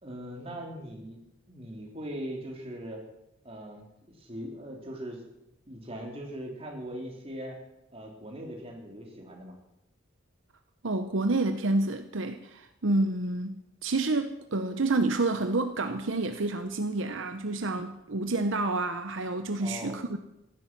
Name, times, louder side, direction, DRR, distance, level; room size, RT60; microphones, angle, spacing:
voice 1, 0.0-1.2 1.5-3.0 3.4-5.3 5.7-7.6 7.9-9.6 19.6-20.0, equal, 30° right, 0 dB, 3.4 m, -40 dB
voice 2, 10.8-20.2, right 2 dB, 70° right, 8 dB, 0.9 m, -29 dB
15.5 x 13.0 x 6.1 m, 0.85 s
head